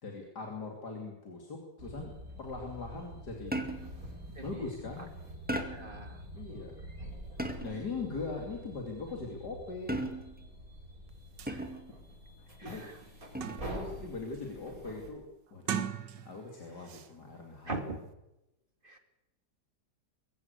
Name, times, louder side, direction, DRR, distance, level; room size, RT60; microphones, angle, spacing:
voice 1, 0.0-2.1 2.4-3.6 4.4-5.1 6.3-6.8 7.6-10.0 12.6-12.9 13.7-15.2 15.5-15.8 16.2-17.7, left 3 dB, 65° left, 1 dB, 3.3 m, -40 dB
sound 1, 1.8-15.1, equal, 50° right, 5.7 m, -46 dB
sound 2, 3.5-4.0 5.5-6.0 7.4-7.9 9.9-10.4 11.5-11.9 13.3-13.7, right 1 dB, 5° right, 1.9 m, -36 dB
voice 2, 4.4-4.7 5.7-6.2 11.5-11.7 12.6-12.9 17.6-18.0 18.8-19.0, right 2 dB, 30° right, 6 dB, 2.6 m, -41 dB
sound 3, 11.1-11.2 11.4-11.6 12.1-12.2 12.6-13.9 14.3-14.7 15.5-16.5 16.9-17.1, right 8 dB, 75° right, 1.8 m, -39 dB
23.0 x 15.0 x 8.2 m, 0.95 s
omnidirectional pair, 1.9 m